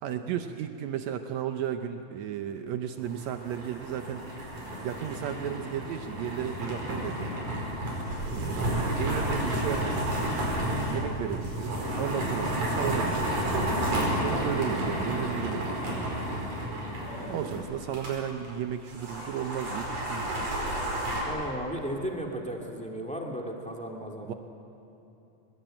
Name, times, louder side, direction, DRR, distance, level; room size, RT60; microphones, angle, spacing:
voice 1, 0.0-4.3 4.8-7.5 8.3-10.0 10.4-13.5 13.8-16.1 17.3-20.5 24.3-24.4, right 9 dB, 90° right, 7 dB, 1.5 m, -34 dB
sound 1, 3.0-18.2 18.4-18.5 18.9-21.2, right 1 dB, 50° right, 6.1 m, -31 dB
voice 2, 21.2-24.3, equal, 5° left, 1 dB, 1.3 m, -36 dB
24.0 x 20.5 x 8.9 m, 2.9 s
omnidirectional pair, 4.2 m